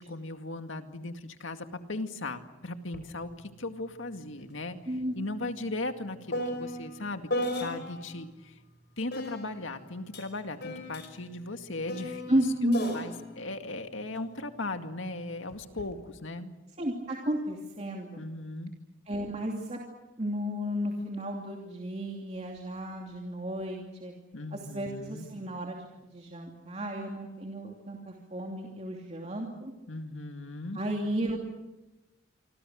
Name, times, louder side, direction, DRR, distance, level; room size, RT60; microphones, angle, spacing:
voice 1, 0.0-4.8 5.2-7.2 7.6-8.5 9.0-16.5 18.2-18.7 24.3-25.3 29.9-30.8, left 2 dB, 80° left, 7 dB, 2.1 m, -37 dB
sound 1, 2.9-3.1 3.4-8.2 9.1-14.7 15.5-15.9, left 1 dB, 55° left, 5.3 m, -37 dB
voice 2, 12.3-12.9 16.8-18.2 19.1-19.8 20.2-24.1 24.5-25.9 26.1-29.7 30.7-31.4, equal, 35° right, 0 dB, 2.8 m, -33 dB
28.0 x 25.0 x 6.4 m, 1.0 s
head